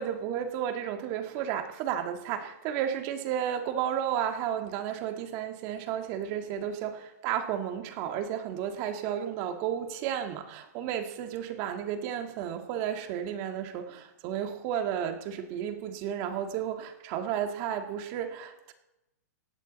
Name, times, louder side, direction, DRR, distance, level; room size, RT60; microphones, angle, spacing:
voice 1, 0.0-18.7, right 9 dB, 35° right, 6 dB, 1.8 m, -33 dB
17.5 x 15.0 x 4.2 m, 0.93 s
hypercardioid pair, 155°, 10 cm